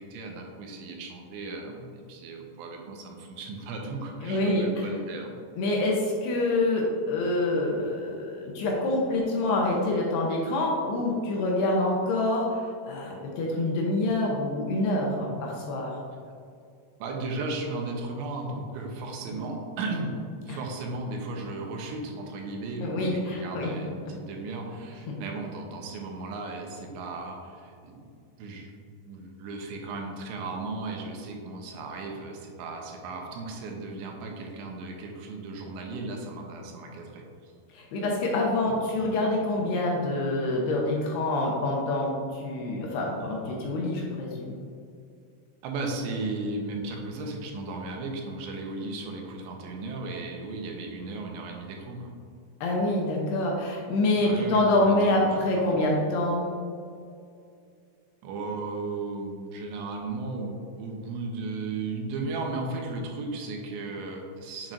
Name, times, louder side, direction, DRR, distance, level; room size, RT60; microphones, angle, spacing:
voice 1, 0.0-5.3 17.0-20.1 20.5-28.0 28.4-28.7 29.1-37.5 38.7-39.2 45.6-52.1 54.2-55.3 55.5-55.7 58.2-64.7, right 3 dB, 90° right, 1 dB, 3.1 m, -35 dB
voice 2, 4.2-4.9 5.6-16.0 20.5-20.6 22.8-23.7 37.7-44.6 52.6-56.5, left 2 dB, 75° left, -1 dB, 2.6 m, -26 dB
7.4 x 7.4 x 2.6 m, 2.4 s
omnidirectional pair, 5.3 m